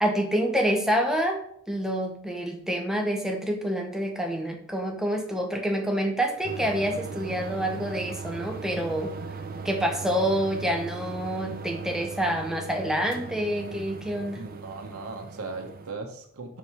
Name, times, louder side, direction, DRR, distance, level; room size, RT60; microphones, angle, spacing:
voice 1, 0.0-1.4 1.7-9.2 9.6-14.4, equal, ahead, 2 dB, 0.8 m, -27 dB
sound 1, 6.4-15.9, right 4 dB, 40° right, 0.5 m, -38 dB
voice 2, 14.3-16.6, right 3 dB, 85° right, 3 dB, 0.9 m, -38 dB
4.7 x 4.5 x 5.5 m, 0.68 s
head